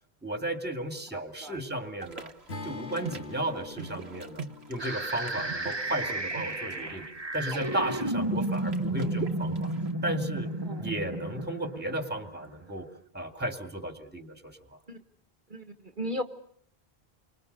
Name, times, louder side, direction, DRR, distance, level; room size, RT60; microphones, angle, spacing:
voice 1, 0.2-2.3 2.6-7.0 7.3-9.7 10.0-10.5 10.8-12.9 13.1-14.6, right 1 dB, 10° right, 6 dB, 2.3 m, -34 dB
voice 2, 1.1-1.6 10.6-10.9 14.9-15.0 15.5-16.2, equal, 50° right, 7 dB, 1.7 m, -36 dB
sound 1, 2.0-9.9, right 5 dB, 85° right, 1.9 m, -42 dB
Acoustic guitar / Strum, 2.5-6.7, left 4 dB, 85° left, 2.5 m, -45 dB
sound 2, 4.8-12.7, right 2 dB, 25° right, 1.4 m, -33 dB
30.0 x 25.0 x 6.7 m, 0.67 s
omnidirectional pair, 1.1 m